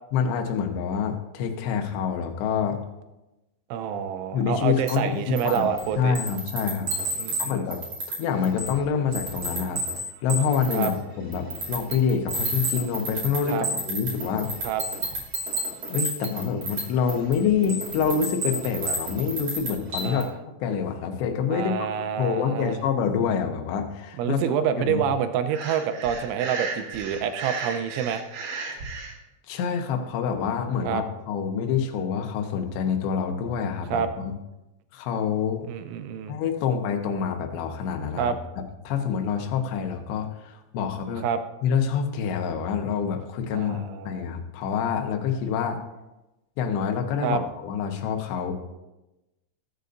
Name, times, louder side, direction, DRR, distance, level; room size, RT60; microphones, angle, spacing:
voice 1, 0.1-2.8 4.3-5.7 6.0-6.9 7.4-7.8 8.1-9.8 10.2-14.5 15.9-20.3 20.6-21.9 22.2-25.0 29.5-34.3 34.9-35.7 36.3-38.4 38.8-41.3 41.6-45.8 46.6-48.5, left 7 dB, 75° left, 4 dB, 3.1 m, -26 dB
voice 2, 3.7-6.2 7.2-7.7 10.7-10.9 13.5-13.7 14.6-14.8 20.0-20.3 21.5-22.8 24.2-28.2 30.8-31.0 33.9-34.1 35.7-36.4 38.2-38.4 41.2-41.4 43.5-44.3 47.2-47.4, right 8 dB, 90° right, 9 dB, 3.2 m, -27 dB
sound 1, 4.9-5.0 5.4-7.4 7.7-8.2 8.4-8.9 9.1-10.9 11.3-16.8 17.1-20.2, right 2 dB, 30° right, 2.8 m, -30 dB
Breathing, 25.5-29.1, right 4 dB, 60° right, 2.6 m, -34 dB
21.0 x 8.1 x 2.6 m, 1.0 s
omnidirectional pair, 5.3 m